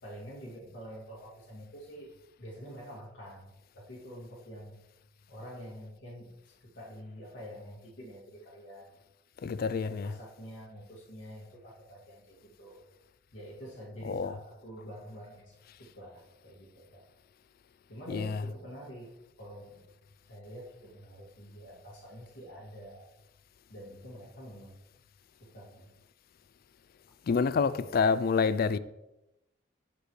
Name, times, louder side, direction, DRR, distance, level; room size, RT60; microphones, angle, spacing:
voice 1, 0.0-4.8 5.3-8.9 9.6-12.8 13.3-15.5 15.8-17.1 17.9-19.1 19.4-19.8 20.2-23.1 23.7-24.8 25.3-25.9 27.5-28.2, equal, 80° left, 2.3 m, -47 dB
voice 2, 9.4-10.1 14.0-14.3 18.1-18.4 27.3-28.8, left 5 dB, 50° left, 0.4 m, -27 dB
15.0 x 5.2 x 3.2 m
head